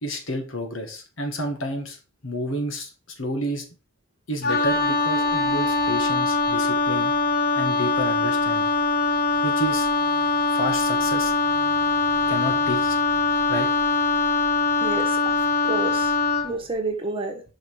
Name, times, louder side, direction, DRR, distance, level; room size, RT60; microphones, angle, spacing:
voice 1, 0.0-2.0 2.2-2.9 3.2-3.6 4.3-7.1 7.6-8.7 9.4-9.9 10.5-11.3 12.3-13.0 13.5-13.7, equal, 70° left, 1.9 m, -29 dB
Wind instrument woodwind instrument, 4.4-16.5, left 3 dB, 45° left, 0.8 m, -22 dB
voice 2, 14.8-15.4 15.6-16.1 16.4-17.4, right 3 dB, 25° right, 1.3 m, -29 dB
5.6 x 5.5 x 4.8 m
head